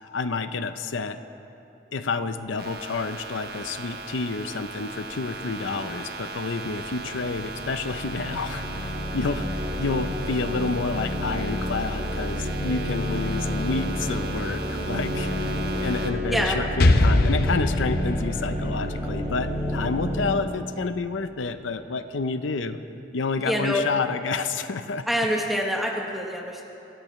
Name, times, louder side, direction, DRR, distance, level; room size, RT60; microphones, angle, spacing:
voice 1, 0.0-1.2 1.9-15.3 15.8-22.8 23.1-25.1, left 4 dB, 90° left, 10 dB, 0.6 m, -29 dB
sound 1, 2.6-16.1, right 3 dB, 55° right, 1.2 m, -38 dB
sound 2, 6.6-20.3, left 1 dB, 35° right, 3.6 m, -30 dB
Explosion, 16.8-20.6, left 2 dB, 55° left, 0.7 m, -23 dB
voice 2, 23.4-23.8 25.1-26.6, equal, ahead, -1 dB, 1.0 m, -25 dB
25.0 x 15.5 x 3.2 m, 2.9 s
head